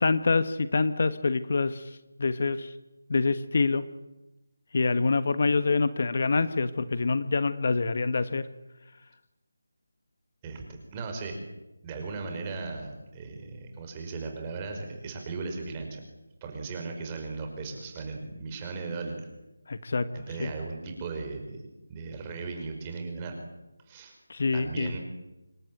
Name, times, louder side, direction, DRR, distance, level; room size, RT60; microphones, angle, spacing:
voice 1, 0.0-1.9 2.2-2.7 3.1-3.9 4.7-8.5 19.7-20.1 20.4-20.5 24.3-25.0, left 4 dB, 45° left, 12 dB, 1.3 m, -26 dB
voice 2, 10.9-11.4 11.8-16.0 16.4-19.2 20.1-21.6 21.9-23.3 23.9-24.2 24.5-25.0, right 4 dB, 15° right, 3 dB, 5.3 m, -37 dB
27.0 x 22.5 x 9.2 m, 1.0 s
figure-of-eight pair, 170°, 0 cm